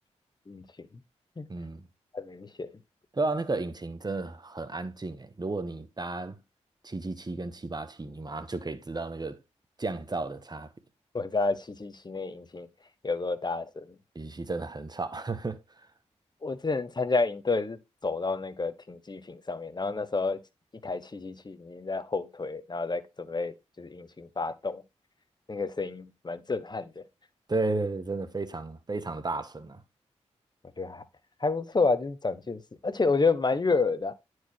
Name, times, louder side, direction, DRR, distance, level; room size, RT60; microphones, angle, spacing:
voice 1, 0.5-0.9 1.4-1.5 2.1-2.7 11.1-12.7 13.0-13.9 16.4-20.4 20.8-24.8 25.5-27.0 30.8-31.0 31.4-34.1, left 3 dB, 35° left, 1.2 m, -30 dB
voice 2, 1.5-1.8 3.1-6.4 6.8-9.4 9.8-10.7 14.1-15.6 27.5-29.8, right 3 dB, 35° right, 1.4 m, -33 dB
10.0 x 4.8 x 4.6 m
cardioid pair, 50°, 12 cm